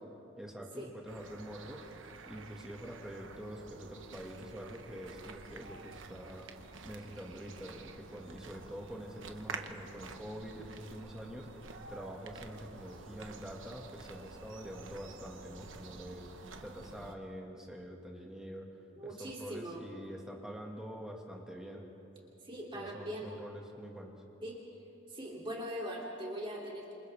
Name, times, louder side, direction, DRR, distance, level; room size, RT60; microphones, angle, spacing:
voice 1, 0.4-6.4 6.8-18.7 19.0-21.8 22.7-24.2, equal, 5° right, -1 dB, 1.9 m, -46 dB
sound 1, 1.1-17.2, right 4 dB, 75° right, 1.2 m, -49 dB
voice 2, 19.0-19.8 22.4-23.3 24.4-24.6 25.1-26.9, equal, 25° right, -3 dB, 2.9 m, -41 dB
29.0 x 27.5 x 3.5 m, 2.9 s
head